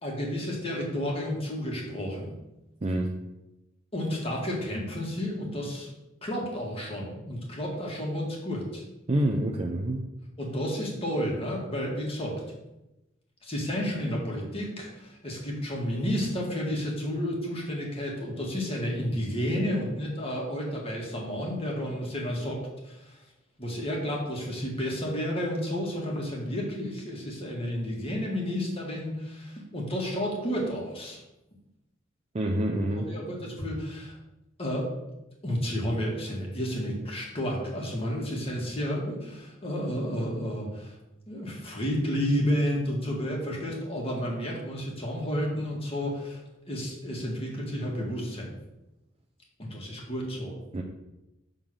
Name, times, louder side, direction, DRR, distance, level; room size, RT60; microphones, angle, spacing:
voice 1, 0.0-2.3 3.9-5.9 6.2-8.8 10.4-12.4 13.4-23.2 23.6-31.2 33.0-34.2 34.6-34.9 35.4-41.0 41.3-46.4 46.7-48.5 49.6-50.6, equal, 30° left, -1 dB, 1.8 m, -31 dB
voice 2, 2.8-3.1 9.1-10.0 32.3-33.1 50.7-50.8, right 1 dB, 30° right, 1 dB, 0.5 m, -27 dB
6.8 x 3.7 x 6.2 m, 0.95 s
head